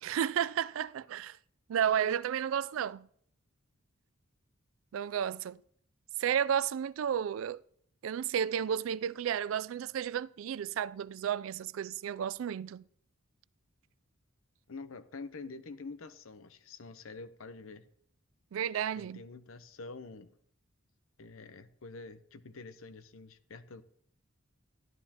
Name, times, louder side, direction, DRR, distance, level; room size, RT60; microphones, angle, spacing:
voice 1, 0.0-1.4 1.7-3.1 4.9-5.6 6.2-7.6 8.0-12.8 18.5-19.2, right 9 dB, 80° right, 0.3 m, -32 dB
voice 2, 14.7-17.9 18.9-20.3 21.2-23.8, left 3 dB, 90° left, 0.7 m, -47 dB
12.5 x 11.5 x 2.9 m
head